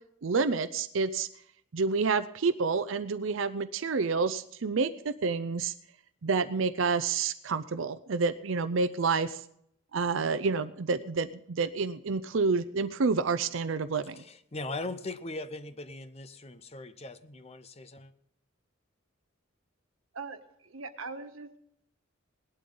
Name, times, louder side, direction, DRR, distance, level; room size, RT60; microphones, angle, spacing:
voice 1, 0.2-1.3 1.7-5.7 6.2-9.4 9.9-14.2, right 4 dB, 70° right, 13 dB, 0.6 m, -29 dB
voice 2, 14.1-18.1, left 2 dB, 30° left, 12 dB, 0.8 m, -40 dB
voice 3, 20.1-21.6, right 4 dB, 90° right, 7 dB, 1.4 m, -41 dB
19.0 x 12.0 x 3.9 m, 0.72 s
head